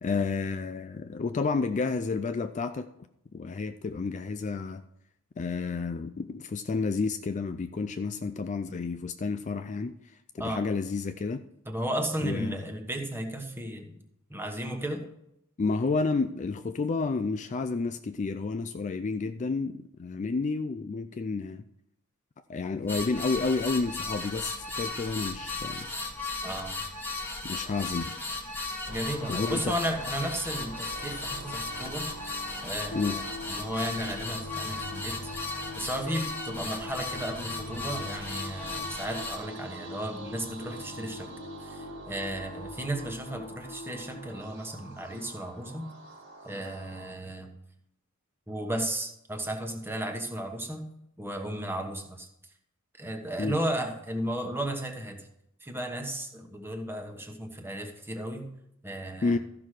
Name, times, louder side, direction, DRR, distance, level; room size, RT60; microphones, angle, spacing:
voice 1, 0.0-2.9 3.3-4.8 5.4-10.0 10.3-11.4 12.2-12.6 15.6-21.6 22.5-25.9 27.4-28.2 29.3-29.7 32.9-33.2 53.4-53.5 59.2-59.4, left 4 dB, 35° left, 0.4 m, -30 dB
voice 2, 11.6-14.0 14.3-15.0 26.4-26.8 28.9-32.1 32.6-35.3 35.7-41.3 41.6-45.9 46.4-47.5 48.5-50.9 51.2-52.3 53.0-55.3 55.6-58.5 58.8-59.4, right 1 dB, 10° right, 1.2 m, -34 dB
sound 1, 22.9-39.4, left 3 dB, 10° left, 1.4 m, -36 dB
sound 2, 28.9-47.1, right 1 dB, 60° right, 2.1 m, -45 dB
sound 3, 32.9-45.4, left 2 dB, 50° left, 1.1 m, -45 dB
13.5 x 5.9 x 4.8 m
head